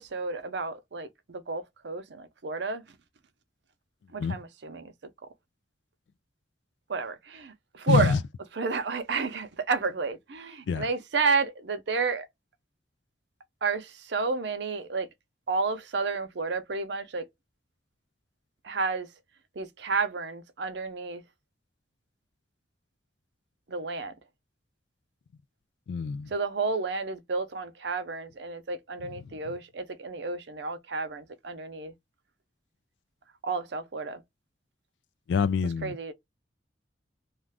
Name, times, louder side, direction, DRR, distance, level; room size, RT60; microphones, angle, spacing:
voice 1, 0.0-2.8 4.1-4.9 6.9-8.2 8.5-12.3 13.6-15.1 15.5-17.2 18.6-19.1 19.6-21.2 23.7-24.1 26.3-31.9 33.4-34.2 35.8-36.1, right 4 dB, 70° right, 0.6 m, -31 dB
voice 2, 7.9-8.2 10.7-10.9 25.9-26.3 29.0-29.3 35.3-36.0, left 5 dB, 75° left, 0.3 m, -26 dB
2.4 x 2.3 x 3.2 m
head